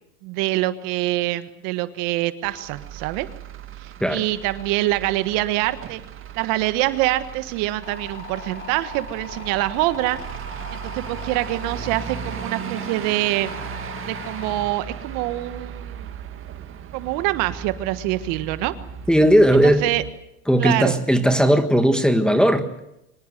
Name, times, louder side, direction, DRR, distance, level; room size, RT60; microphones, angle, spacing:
voice 1, 0.2-3.3 3.8-6.0 6.3-10.2 10.7-13.5 14.1-16.1 16.9-18.7 19.8-20.0 20.6-21.0, right 17 dB, 45° right, 12 dB, 1.5 m, -25 dB
Truck / Idling, 2.4-20.1, right 8 dB, 30° right, 1.9 m, -37 dB
sound 1, 7.8-14.6, left 3 dB, 25° left, 5.0 m, -39 dB
voice 2, 19.1-19.8 20.5-22.8, equal, ahead, 6 dB, 1.5 m, -17 dB
24.5 x 19.5 x 7.8 m, 0.86 s
hypercardioid pair, 120°, 45 cm